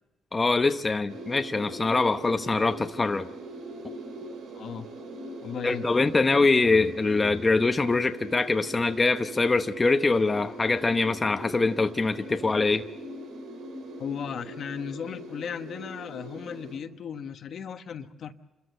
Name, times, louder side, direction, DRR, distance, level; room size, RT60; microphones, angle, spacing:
voice 1, 0.3-3.3 5.6-12.8, left 3 dB, 25° left, 7 dB, 0.9 m, -24 dB
sound 1, 1.1-16.8, right 1 dB, 80° right, 3.2 m, -41 dB
voice 2, 4.5-4.9 5.4-5.9 14.0-18.3, left 7 dB, 60° left, 8 dB, 1.1 m, -36 dB
27.0 x 14.0 x 7.9 m, 1.1 s
cardioid pair, 90°, 0 cm